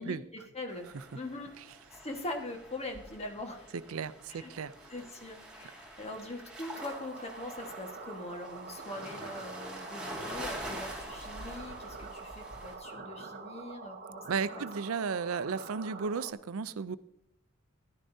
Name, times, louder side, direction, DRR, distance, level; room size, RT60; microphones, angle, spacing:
voice 1, 0.0-1.5 1.9-3.7 4.3-4.5 4.9-14.7, left 2 dB, 30° left, 3 dB, 1.4 m, -42 dB
sound 1, 0.7-12.7, right 1 dB, 5° right, 3.4 m, -46 dB
voice 2, 3.9-4.7 14.3-17.0, right 5 dB, 80° right, 15 dB, 0.5 m, -34 dB
sound 2, 6.7-16.3, right 4 dB, 45° right, 0.8 m, -46 dB
13.5 x 11.5 x 2.7 m, 0.79 s
head